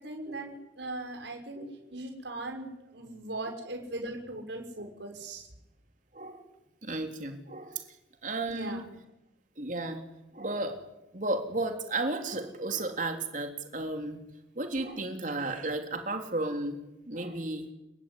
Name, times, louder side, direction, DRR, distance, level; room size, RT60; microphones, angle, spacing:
voice 1, 0.0-1.6 1.9-5.5 8.5-8.9, right 2 dB, 70° right, 3 dB, 6.0 m, -39 dB
voice 2, 6.8-7.8 8.2-8.8 9.6-10.0 10.3-10.8 11.1-14.2 14.6-16.8 17.1-17.7, right 2 dB, 45° right, 4 dB, 3.5 m, -33 dB
30.0 x 19.0 x 9.9 m, 0.91 s
head